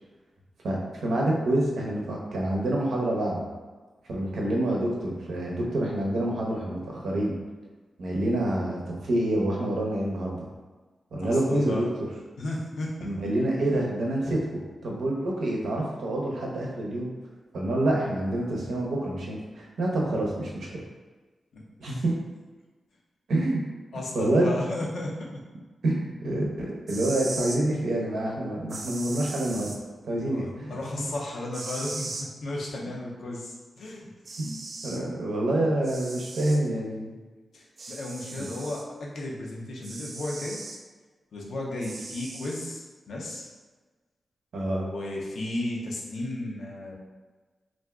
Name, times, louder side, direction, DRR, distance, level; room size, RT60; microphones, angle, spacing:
voice 1, 0.6-3.4 4.1-7.3 8.0-10.5 11.1-11.8 13.0-17.1 17.5-20.7 21.8-22.1 23.3-23.6 24.1-24.5 25.8-29.8 30.0-31.1 34.4-34.5 34.8-37.1 38.3-38.5 44.5-44.9, right 1 dB, 85° right, -2 dB, 0.7 m, -27 dB
voice 2, 11.2-11.9 12.4-13.1 21.5-22.0 23.9-25.3 30.3-34.1 37.5-40.6 41.3-43.5 44.8-46.9, left 1 dB, 80° left, -3 dB, 0.6 m, -34 dB
sound 1, 26.7-27.6 28.7-29.8 31.5-32.3 33.8-33.9 34.2-35.0 35.8-36.6 37.8-38.9 39.8-40.8 41.8-42.8, right 3 dB, 55° right, 0.3 m, -38 dB
2.5 x 2.3 x 3.4 m, 1.3 s
cardioid pair, 75°, 0 cm